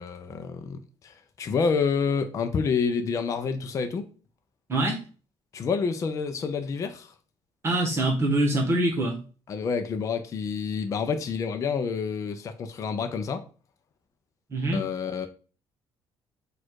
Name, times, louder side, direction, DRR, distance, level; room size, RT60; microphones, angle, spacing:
voice 1, 0.0-4.0 5.5-7.1 9.5-13.4 14.7-15.3, left 5 dB, 35° left, 0.5 m, -28 dB
voice 2, 4.7-5.0 7.6-9.2 14.5-14.8, right 1 dB, 30° right, 1.2 m, -24 dB
4.3 x 2.4 x 4.6 m
cardioid pair, 140°, 9 cm